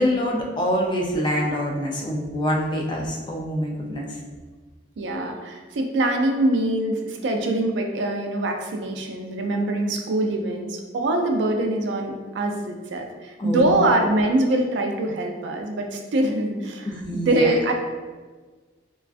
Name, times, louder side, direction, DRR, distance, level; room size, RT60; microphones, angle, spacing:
voice 1, 0.0-4.2 13.4-13.9 16.8-17.5, equal, 25° left, -1 dB, 0.3 m, -25 dB
voice 2, 5.0-16.9 17.1-17.7, right 1 dB, 75° right, 3 dB, 0.3 m, -23 dB
2.4 x 2.3 x 2.4 m, 1.4 s
head